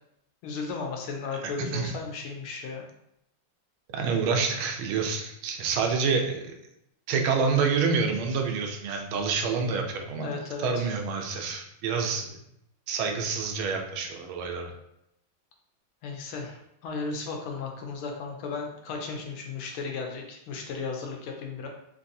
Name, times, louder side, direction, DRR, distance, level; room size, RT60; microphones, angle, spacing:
voice 1, 0.4-2.8 10.2-10.9 16.0-21.7, left 4 dB, 85° left, 2 dB, 1.5 m, -35 dB
voice 2, 1.4-1.9 3.9-6.5 7.1-10.3 10.6-12.4 12.9-14.7, right 5 dB, 80° right, 3 dB, 1.4 m, -27 dB
3.7 x 2.6 x 2.6 m, 0.79 s
omnidirectional pair, 2.3 m